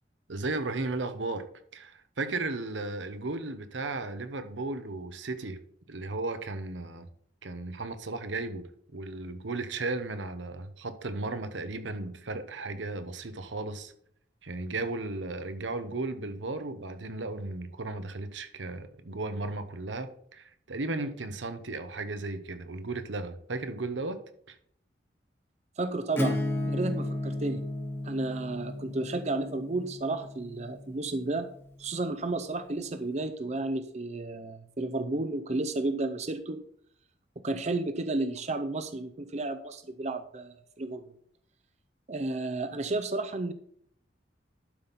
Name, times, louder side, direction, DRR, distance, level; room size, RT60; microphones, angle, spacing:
voice 1, 0.3-1.4 1.7-5.6 5.9-7.1 7.4-13.9 14.4-24.2 24.5-24.6, right 2 dB, 85° right, 10 dB, 0.9 m, -35 dB
voice 2, 25.8-27.6 28.0-31.5 31.8-36.6 37.4-41.0 42.1-43.5, right 2 dB, 40° right, 9 dB, 0.6 m, -32 dB
Acoustic guitar / Strum, 26.2-31.7, left 1 dB, 15° left, 0.9 m, -34 dB
11.5 x 5.4 x 4.1 m, 0.64 s
head